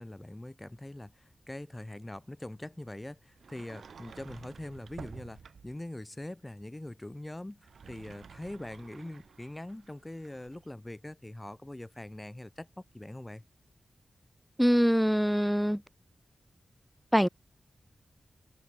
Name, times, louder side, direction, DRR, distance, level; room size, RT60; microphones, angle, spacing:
voice 1, 0.0-13.4, left 1 dB, 15° left, 2.1 m, -43 dB
Sliding door, 3.4-5.9 7.5-10.7, right 6 dB, 75° right, 5.7 m, -51 dB
voice 2, 14.6-15.8 17.1-17.3, equal, ahead, 0.5 m, -24 dB
wide cardioid pair, 100°, 0 cm